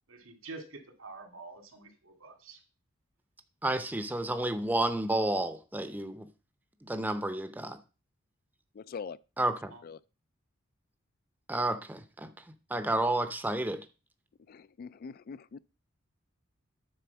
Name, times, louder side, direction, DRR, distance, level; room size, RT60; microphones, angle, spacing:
voice 1, 0.1-2.6 9.7-9.8, right 3 dB, 90° right, 2.4 m, -47 dB
voice 2, 3.6-6.3 6.8-7.8 9.4-9.7 11.5-12.3 12.7-13.8, right 1 dB, 10° right, 0.6 m, -31 dB
voice 3, 8.8-9.2 9.8-10.0 14.5-15.6, left 5 dB, 50° left, 0.3 m, -43 dB
9.4 x 4.2 x 6.9 m
head